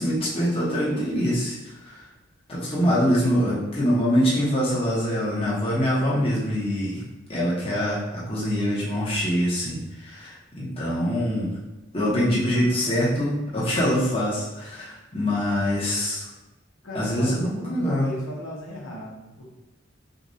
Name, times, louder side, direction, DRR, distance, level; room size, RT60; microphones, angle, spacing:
voice 1, 0.0-2.0 2.5-7.0 7.3-11.5 11.9-16.3 16.9-18.1, equal, 25° left, -7 dB, 1.2 m, -24 dB
voice 2, 16.8-19.5, equal, 65° left, -4 dB, 0.9 m, -36 dB
6.6 x 2.5 x 2.8 m, 1.0 s
head